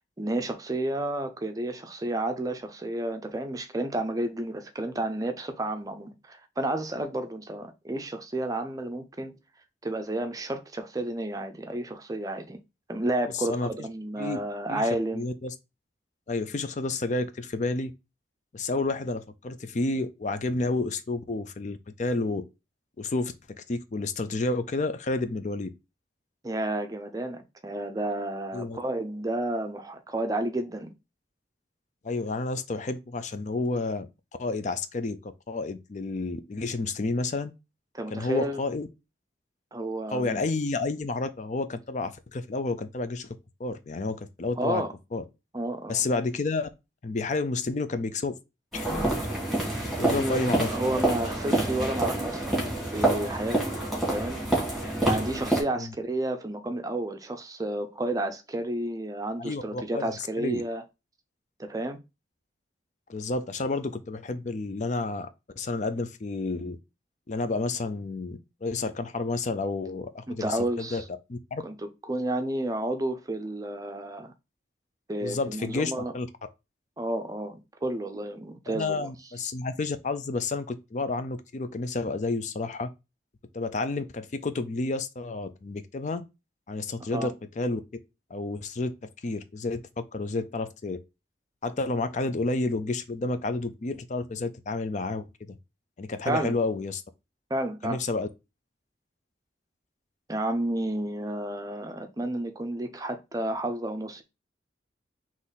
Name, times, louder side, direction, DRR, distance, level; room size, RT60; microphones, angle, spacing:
voice 1, 0.2-9.4 9.8-12.6 12.9-15.3 26.4-30.9 37.9-38.6 39.7-40.4 44.6-44.9 45.5-46.0 50.0-52.6 52.9-53.6 54.0-54.4 55.0-60.8 61.6-62.0 70.3-71.0 71.6-71.8 72.1-74.3 75.1-76.1 77.0-79.1 87.1-87.3 96.3-96.6 97.5-98.0 100.3-104.2, right 1 dB, 20° right, 0.5 m, -31 dB
voice 2, 13.3-13.7 14.2-14.4 14.7-14.8 15.1-15.5 16.3-17.9 18.5-22.4 23.0-23.3 23.7-25.7 28.5-28.8 32.0-34.1 34.4-37.5 38.1-38.9 40.1-44.8 45.1-45.2 45.9-46.7 47.0-48.4 48.7-49.0 50.0-50.7 55.8-55.9 59.4-60.6 63.1-65.3 65.6-66.8 67.3-71.0 71.3-71.6 75.2-76.3 78.7-82.9 83.5-86.2 86.7-87.8 88.3-88.9 89.2-91.0 91.6-95.6 96.0-97.0 97.8-98.3, left 3 dB, 45° left, 0.5 m, -30 dB
sound 1, 48.7-55.6, right 1 dB, ahead, 1.8 m, -27 dB
4.0 x 3.1 x 3.9 m
head